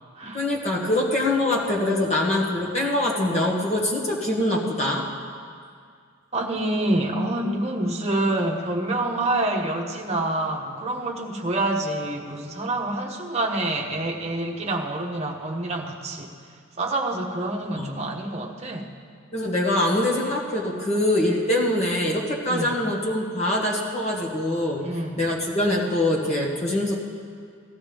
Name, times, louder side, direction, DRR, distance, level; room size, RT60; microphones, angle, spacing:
voice 1, 0.3-5.0 17.7-17.9 19.3-24.9 25.2-27.0, left 1 dB, 30° left, -3 dB, 1.8 m, -24 dB
voice 2, 6.3-16.3 16.8-18.9 22.5-22.9 24.8-25.3, right 2 dB, 30° right, 0 dB, 1.1 m, -27 dB
17.5 x 13.5 x 3.5 m, 2.1 s
head